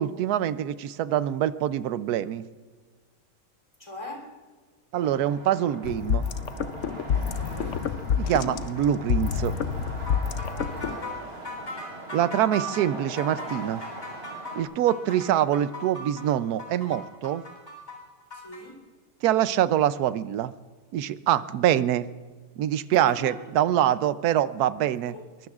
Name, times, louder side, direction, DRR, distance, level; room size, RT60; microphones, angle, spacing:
voice 1, 0.0-2.4 4.9-6.2 8.2-9.6 12.1-13.8 14.6-17.4 19.2-20.5 20.9-22.1 22.6-25.2, right 11 dB, 90° right, 15 dB, 1.1 m, -25 dB
voice 2, 3.8-4.4 7.1-7.9 10.5-11.3 18.3-18.8 22.9-23.4 24.8-25.3, left 1 dB, 20° left, 1 dB, 3.3 m, -42 dB
sound 1, 4.9-14.6, right 2 dB, 70° right, 3.1 m, -41 dB
sound 2, 5.8-11.0, left 7 dB, 60° left, 0.9 m, -28 dB
sound 3, 10.1-18.6, left 1 dB, 45° left, 4.2 m, -38 dB
23.0 x 23.0 x 2.4 m, 1.4 s
omnidirectional pair, 1.6 m